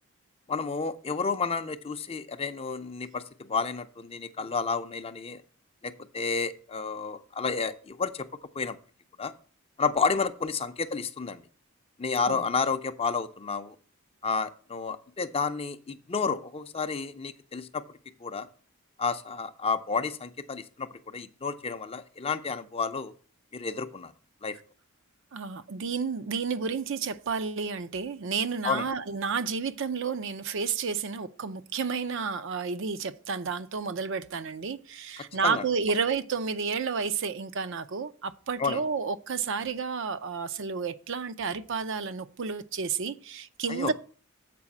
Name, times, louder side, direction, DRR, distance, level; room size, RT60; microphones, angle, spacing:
voice 1, 0.5-5.4 5.8-8.3 8.5-8.8 9.2-9.3 9.8-11.4 12.0-13.8 14.2-17.8 18.2-18.5 19.0-23.1 23.5-24.1 24.4-24.6 28.6-28.9 35.2-35.6 38.6-38.8 43.7-43.9, left 5 dB, 30° left, 0.5 m, -31 dB
voice 2, 25.3-43.9, right 5 dB, 65° right, 0.5 m, -31 dB
7.6 x 4.8 x 7.1 m
head